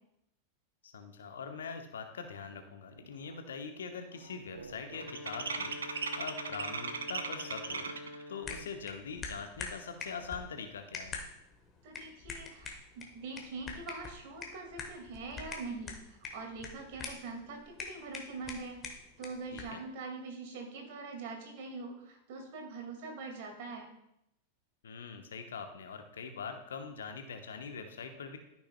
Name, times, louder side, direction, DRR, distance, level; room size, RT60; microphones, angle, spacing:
voice 1, 0.8-7.9 8.3-11.2 19.5-19.8 24.8-28.4, left 5 dB, 65° left, 7 dB, 1.0 m, -43 dB
sound 1, 2.5-2.6 3.0-3.3 3.6-8.2, right 4 dB, 70° right, 0.6 m, -39 dB
sound 2, 4.8-8.8, left 1 dB, 40° left, 1.2 m, -47 dB
sound 3, 8.4-19.8, left 4 dB, 25° left, 1.4 m, -45 dB
voice 2, 11.8-23.9, right 3 dB, 50° right, 3 dB, 2.0 m, -43 dB
13.5 x 6.0 x 2.2 m, 0.82 s
figure-of-eight pair, 90°, 0 cm